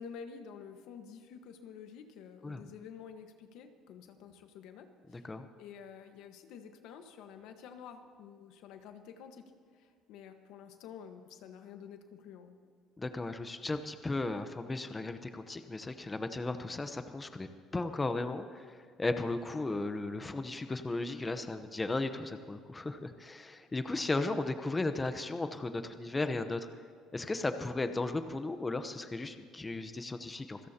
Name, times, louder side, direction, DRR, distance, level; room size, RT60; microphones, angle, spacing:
voice 1, 0.0-5.3 5.6-9.4 9.7-12.5, left 7 dB, 75° left, 7 dB, 1.4 m, -49 dB
voice 2, 5.1-5.5 13.0-17.5 17.7-26.7 27.1-30.6, left 2 dB, 20° left, 8 dB, 0.9 m, -35 dB
26.0 x 16.5 x 2.9 m, 2.1 s
cardioid pair, 100°, 0 cm